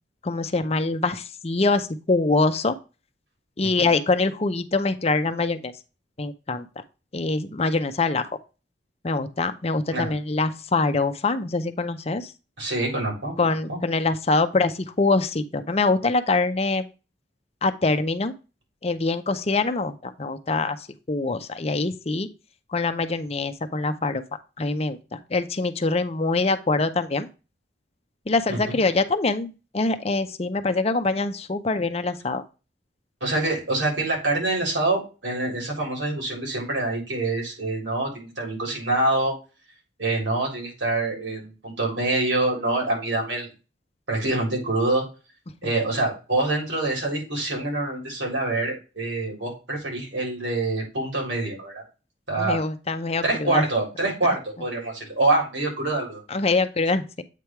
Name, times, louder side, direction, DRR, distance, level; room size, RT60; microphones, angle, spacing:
voice 1, 0.2-2.8 3.6-5.7 6.2-6.8 7.1-8.3 9.0-12.3 13.4-16.9 17.6-18.3 18.8-22.3 22.7-24.2 24.6-27.3 28.3-32.4 52.4-53.7 56.3-57.2, left 3 dB, 35° left, 10 dB, 0.6 m, -24 dB
voice 2, 12.6-13.3 13.7-13.8 28.5-28.8 33.2-39.3 40.0-43.5 44.1-45.0 45.6-51.8 52.3-52.6 53.2-56.2, right 2 dB, 85° right, 0 dB, 3.9 m, -25 dB
8.3 x 3.4 x 4.4 m, 0.31 s
head